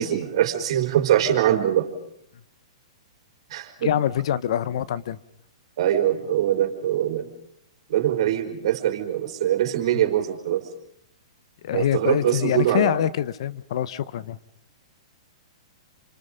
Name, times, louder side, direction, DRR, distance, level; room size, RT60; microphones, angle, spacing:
voice 1, 0.0-1.9 3.5-3.9 5.8-7.2 7.9-10.6 11.7-12.9, right 11 dB, 60° right, 5 dB, 4.4 m, -23 dB
voice 2, 3.8-5.2 9.9-10.0 11.6-14.4, left 10 dB, 65° left, 17 dB, 1.0 m, -25 dB
28.5 x 26.5 x 5.3 m, 0.73 s
hypercardioid pair, 135°, 3 cm